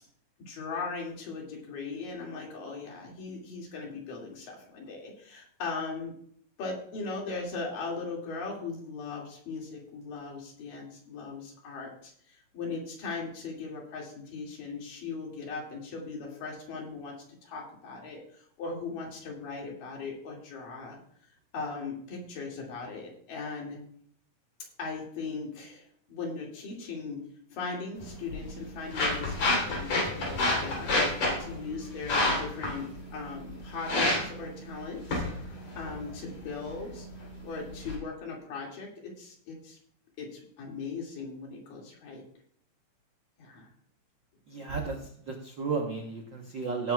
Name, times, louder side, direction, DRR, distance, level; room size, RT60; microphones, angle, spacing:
voice 1, 0.5-6.2 6.6-17.2 17.4-21.0 21.5-23.8 24.8-27.2 27.5-31.0 31.4-35.3 35.8-37.1 37.4-39.8 40.2-42.2 43.4-43.7 44.6-44.7, left 4 dB, 85° left, -1 dB, 4.0 m, -39 dB
sound 1, 28.0-38.0, left 2 dB, 55° left, 4.6 m, -31 dB
voice 2, 44.5-45.0 45.3-46.9, right 4 dB, 75° right, 1 dB, 1.0 m, -32 dB
17.5 x 9.4 x 2.3 m, 0.64 s
omnidirectional pair, 3.8 m